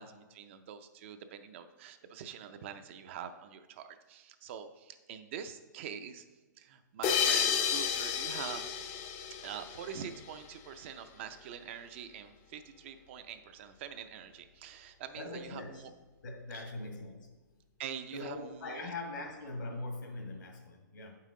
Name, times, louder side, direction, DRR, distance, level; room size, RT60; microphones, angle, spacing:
voice 1, 0.0-6.2 6.6-8.7 9.4-15.9 16.5-16.7 17.8-18.9, right 8 dB, 40° right, 9 dB, 0.5 m, -45 dB
sound 1, 7.0-10.4, left 7 dB, 25° left, 0.5 m, -32 dB
voice 2, 15.1-15.9 16.2-17.3 18.1-21.2, left 2 dB, 80° left, 2 dB, 1.8 m, -42 dB
7.3 x 5.6 x 3.7 m, 1.2 s
hypercardioid pair, 150°, 10 cm